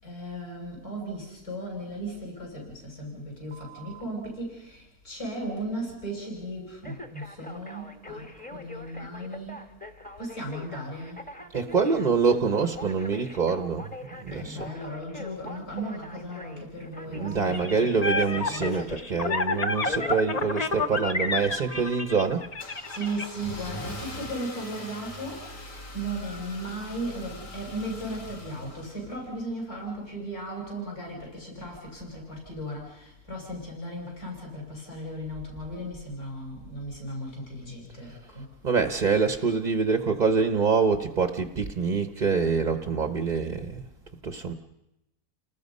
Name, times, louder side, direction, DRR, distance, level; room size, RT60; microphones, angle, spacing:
voice 1, 0.0-9.7 10.2-11.2 14.3-19.0 22.9-38.5, right 1 dB, 60° left, -1 dB, 7.2 m, -36 dB
Telephone, 3.5-4.0 6.8-21.0 21.5-22.0, left 2 dB, 5° left, 1.1 m, -41 dB
voice 2, 11.5-14.7 17.1-22.5 38.6-43.8 44.2-44.5, right 5 dB, 35° right, 7 dB, 0.8 m, -25 dB
sound 1, 17.5-23.3, left 3 dB, 35° left, 0.7 m, -29 dB
Car / Engine starting, 21.5-29.5, left 1 dB, 75° left, 3.3 m, -42 dB
29.5 x 20.0 x 5.4 m, 0.90 s
omnidirectional pair, 1.8 m